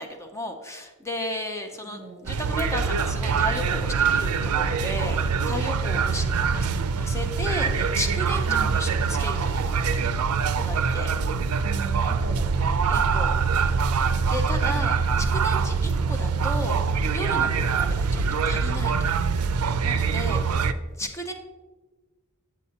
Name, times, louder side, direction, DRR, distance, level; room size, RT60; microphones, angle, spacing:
voice 1, 0.0-6.3 6.5-10.1 10.6-11.1 12.9-13.3 14.3-16.8 17.1-19.1 19.8-20.4 21.0-21.3, left 1 dB, 15° left, 4 dB, 0.5 m, -34 dB
voice 2, 1.9-2.3 8.5-9.0 11.6-12.9 13.7-14.0 15.0-15.6, right 1 dB, 50° right, 6 dB, 0.8 m, -40 dB
sound 1, 2.3-20.7, right 5 dB, 75° right, 0.4 m, -24 dB
7.9 x 7.4 x 2.8 m, 1.3 s
head